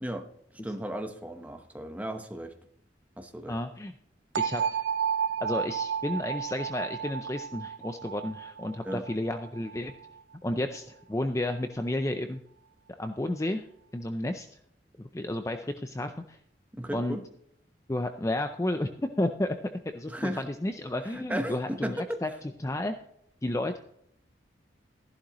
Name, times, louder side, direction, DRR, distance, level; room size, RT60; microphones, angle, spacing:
voice 1, 0.6-2.5 3.2-3.6 8.8-9.0 16.7-17.2 20.1-20.4 21.1-22.2, equal, 10° right, 5 dB, 1.0 m, -35 dB
voice 2, 3.5-3.9 4.4-4.8 5.4-9.9 10.4-12.4 13.0-13.7 13.9-14.5 15.0-16.4 16.9-17.2 17.9-18.9 19.2-22.3 22.6-22.9 23.4-23.8, left 1 dB, 15° left, 7 dB, 0.5 m, -32 dB
sound 1, 4.4-10.2, right 7 dB, 85° right, 0.5 m, -32 dB
14.0 x 11.5 x 3.0 m, 0.71 s
head